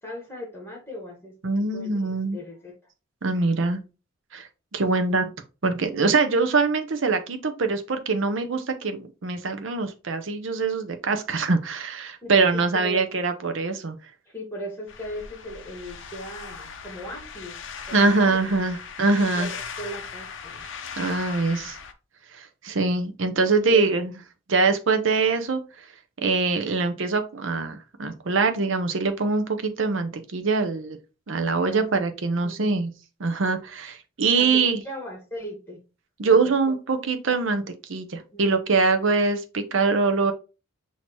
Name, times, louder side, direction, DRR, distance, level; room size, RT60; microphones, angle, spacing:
voice 1, 0.0-2.7 4.9-5.2 12.2-13.1 14.3-17.6 17.9-18.4 19.3-20.7 23.6-23.9 31.7-32.1 32.4-32.8 34.3-35.8 36.2-36.5 38.3-38.8, equal, 10° left, 1.4 m, -38 dB
voice 2, 1.4-2.4 3.2-3.8 4.3-5.3 5.6-14.0 17.9-19.5 21.0-21.8 22.3-24.1 24.5-25.9 26.2-31.0 31.3-32.9 33.2-34.8 36.2-37.6 37.9-40.3, right 4 dB, 65° right, 0.6 m, -23 dB
sound 1, 14.9-21.9, left 6 dB, 60° left, 0.5 m, -39 dB
6.3 x 2.8 x 2.9 m
head